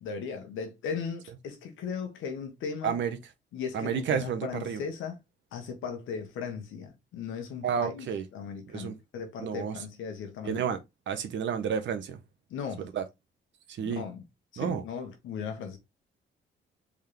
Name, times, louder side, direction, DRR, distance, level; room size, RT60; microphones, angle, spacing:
voice 1, 0.0-2.9 3.5-5.2 5.5-8.1 8.3-10.7 12.5-12.9 13.8-14.2 14.5-15.8, left 6 dB, 85° left, 1.4 m, -37 dB
voice 2, 2.8-3.2 3.7-4.8 7.6-8.2 8.7-8.9 9.4-9.8 10.4-10.8 11.1-12.2 12.9-13.0 13.7-14.0 14.6-14.8, right 7 dB, 70° right, 1.0 m, -30 dB
4.1 x 3.7 x 3.3 m
cardioid pair, 90°, 20 cm